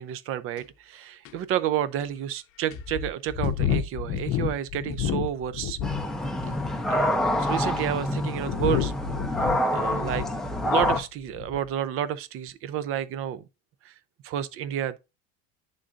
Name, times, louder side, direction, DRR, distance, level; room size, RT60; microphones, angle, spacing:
voice 1, 0.0-5.8 6.9-9.0 9.7-10.3 10.6-13.4 13.9-14.0 14.2-15.0, right 11 dB, 45° right, 0.5 m, -30 dB
sound 1, 0.6-0.7 1.2-1.3 2.0-2.1 2.7-6.1 6.4-6.9 7.6-11.0 11.3-11.7, left 9 dB, 45° left, 0.7 m, -30 dB
sound 2, 5.8-11.0, left 1 dB, ahead, 0.5 m, -27 dB
11.0 x 3.8 x 2.5 m
supercardioid pair, 130°, 31 cm